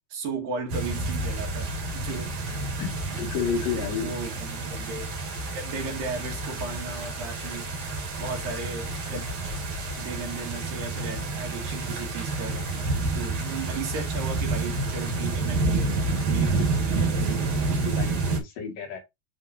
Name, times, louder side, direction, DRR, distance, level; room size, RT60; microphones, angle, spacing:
voice 1, 0.1-2.4 3.7-5.1 5.6-7.7 8.2-9.2 10.0-12.9 13.2-16.0 16.3-17.2, right 4 dB, 70° right, 3.6 m, -36 dB
sound 1, 0.7-18.4, right 3 dB, 50° right, 2.9 m, -29 dB
voice 2, 2.8-4.1 17.9-19.0, left 6 dB, 70° left, 3.4 m, -31 dB
10.5 x 3.8 x 2.6 m
omnidirectional pair, 4.3 m